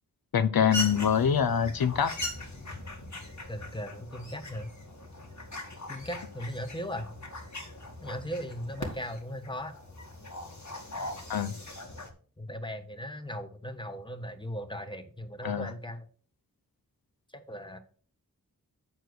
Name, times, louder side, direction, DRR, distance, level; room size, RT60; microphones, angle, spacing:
voice 1, 0.3-2.1 11.3-11.5 15.4-15.7, left 8 dB, 80° left, 10 dB, 0.7 m, -25 dB
sound 1, 0.7-12.1, left 1 dB, 55° left, 2.1 m, -40 dB
voice 2, 3.5-4.7 5.9-7.1 8.0-9.7 12.4-16.1 17.3-17.8, equal, 15° left, 8 dB, 1.3 m, -38 dB
8.3 x 4.5 x 6.2 m, 0.42 s
wide cardioid pair, 50°, 35 cm